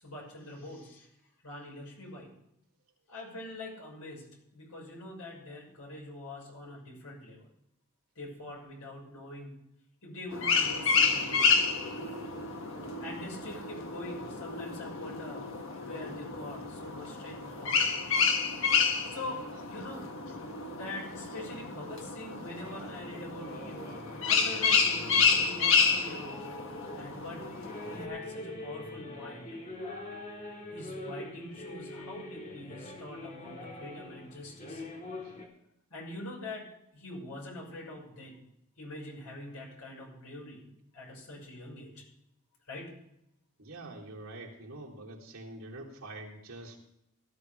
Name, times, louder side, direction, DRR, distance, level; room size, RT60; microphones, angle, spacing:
voice 1, 0.0-1.1 1.4-2.3 3.1-4.2 4.5-7.4 8.2-9.5 10.0-11.6 13.0-15.5 15.8-17.8 19.1-20.3 20.7-23.9 24.2-26.4 26.9-27.4 27.8-29.6 30.7-34.8 35.9-36.7 36.9-38.4 38.8-40.7 40.9-42.0 42.7-42.9, left 1 dB, 85° left, -2 dB, 5.8 m, -44 dB
sound 1, 10.3-28.0, left 5 dB, 60° left, 1.4 m, -30 dB
sound 2, 22.6-35.5, left 1 dB, 35° left, 2.3 m, -44 dB
voice 2, 43.6-46.8, right 2 dB, 65° right, -4 dB, 3.5 m, -45 dB
17.5 x 13.5 x 3.5 m, 0.80 s
head